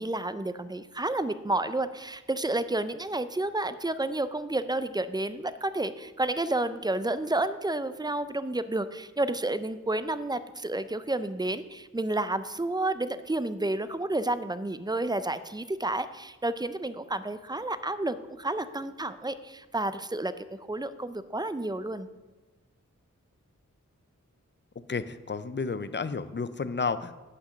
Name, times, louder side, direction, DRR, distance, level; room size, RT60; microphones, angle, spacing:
voice 1, 0.0-22.1, right 2 dB, 15° right, 12 dB, 0.5 m, -30 dB
voice 2, 24.9-27.2, left 4 dB, 35° left, 13 dB, 0.5 m, -31 dB
8.2 x 5.9 x 6.3 m, 1.2 s
wide cardioid pair, 70°, 30 cm